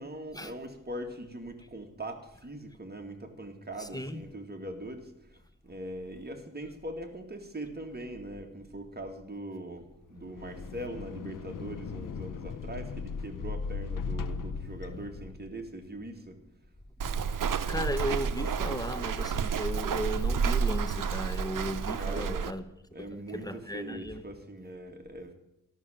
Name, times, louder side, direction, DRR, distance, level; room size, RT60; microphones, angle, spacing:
voice 1, 0.0-16.4 21.9-22.6 22.9-25.3, right 1 dB, 30° right, 2.1 m, -41 dB
voice 2, 3.8-4.2 14.6-14.8 17.1-22.6 23.0-24.2, equal, 10° left, 1.1 m, -36 dB
sound 1, 10.1-15.7, left 5 dB, 80° left, 0.7 m, -38 dB
Walk footsteps, 17.0-22.5, right 6 dB, 80° right, 0.7 m, -30 dB
12.5 x 6.3 x 8.9 m
cardioid pair, 60°, 31 cm